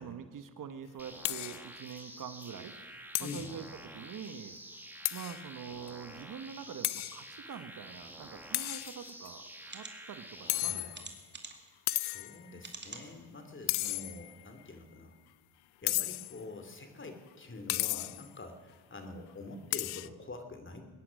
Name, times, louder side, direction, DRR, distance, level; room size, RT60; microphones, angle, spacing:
voice 1, 0.0-2.7 3.2-4.6 5.1-11.1, right 7 dB, 55° right, 10 dB, 1.1 m, -45 dB
sound 1, 1.0-10.6, right 1 dB, 5° right, 1.7 m, -49 dB
sound 2, 1.2-1.6 2.0-2.1 2.4-2.5 3.1-3.5 5.0-5.4 5.9-6.0 6.8-7.2 8.5-9.3 10.5-11.2 11.9-12.4 13.7-14.4 15.9-16.4 17.7-18.3 19.7-20.1, left 19 dB, 85° left, 0.5 m, -34 dB
sound 3, 9.6-9.9 10.9-11.7 12.6-13.1 13.6-13.7 14.1-14.2, right 4 dB, 30° right, 2.4 m, -46 dB
voice 2, 10.4-11.0 11.9-15.2 15.8-20.8, left 3 dB, 30° left, 6 dB, 2.6 m, -46 dB
21.5 x 10.0 x 6.3 m, 1.4 s
cardioid pair, 80°, 38 cm